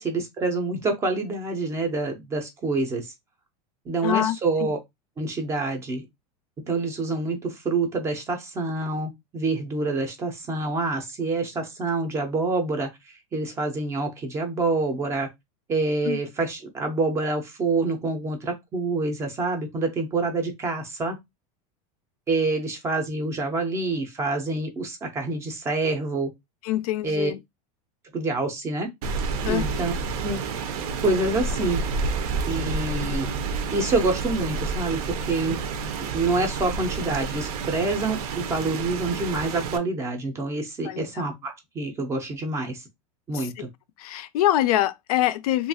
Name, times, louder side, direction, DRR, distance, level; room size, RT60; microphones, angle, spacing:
voice 1, 0.0-3.1 3.9-4.8 5.2-6.1 6.6-15.3 15.7-21.2 22.3-26.3 27.0-27.3 28.1-28.9 29.4-29.9 30.2-30.4 31.0-31.8 32.5-33.3 33.7-35.6 36.0-42.8 43.3-43.7, right 3 dB, 15° right, 0.4 m, -27 dB
voice 2, 4.0-4.7 16.0-16.2 26.6-27.4 29.4-29.6 40.8-41.3 43.3-43.5 44.0-45.7, left 13 dB, 75° left, 0.4 m, -25 dB
Rain, 29.0-39.8, right 4 dB, 75° right, 0.6 m, -29 dB
2.7 x 2.4 x 2.6 m
supercardioid pair, 170°, 19 cm